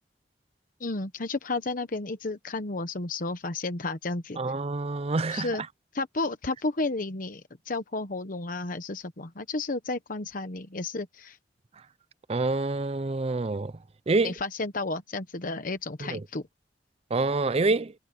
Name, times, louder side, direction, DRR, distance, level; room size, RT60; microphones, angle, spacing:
voice 1, 0.8-4.4 5.3-5.6 5.9-11.4 14.2-16.4, left 3 dB, 50° left, 1.1 m, -32 dB
voice 2, 4.4-5.5 12.3-13.7 14.1-14.3 16.0-16.2 17.1-17.9, right 3 dB, 35° right, 0.6 m, -27 dB
head